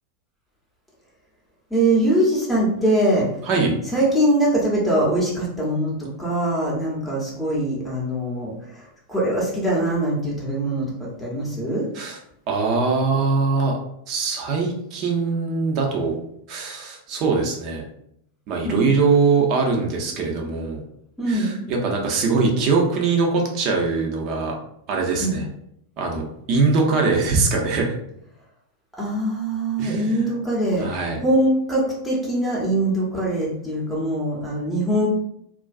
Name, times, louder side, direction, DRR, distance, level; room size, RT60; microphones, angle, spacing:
voice 1, 1.7-3.4 3.9-11.9 18.6-18.9 21.2-21.6 25.2-25.4 29.0-35.1, right 1 dB, 5° left, -6 dB, 0.8 m, -22 dB
voice 2, 3.5-3.8 11.9-12.2 12.5-13.8 14.1-16.1 16.5-17.8 18.5-20.8 21.3-24.5 24.9-25.4 26.0-27.9 29.8-30.3 30.8-31.2, right 4 dB, 40° right, 0 dB, 0.5 m, -22 dB
2.4 x 2.2 x 2.4 m, 0.75 s
figure-of-eight pair, 90°, 0 cm